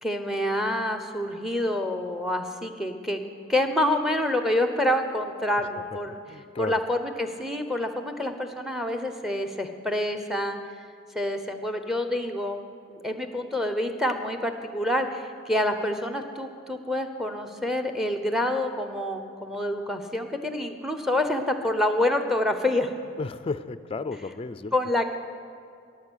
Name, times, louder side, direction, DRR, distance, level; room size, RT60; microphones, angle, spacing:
voice 1, 0.0-3.2 3.5-6.2 6.6-10.6 11.1-12.6 12.9-23.0 24.7-25.1, left 1 dB, ahead, 7 dB, 0.9 m, -27 dB
voice 2, 6.3-6.8 23.2-24.7, left 4 dB, 30° left, 13 dB, 0.4 m, -33 dB
21.5 x 7.6 x 6.4 m, 2.4 s
head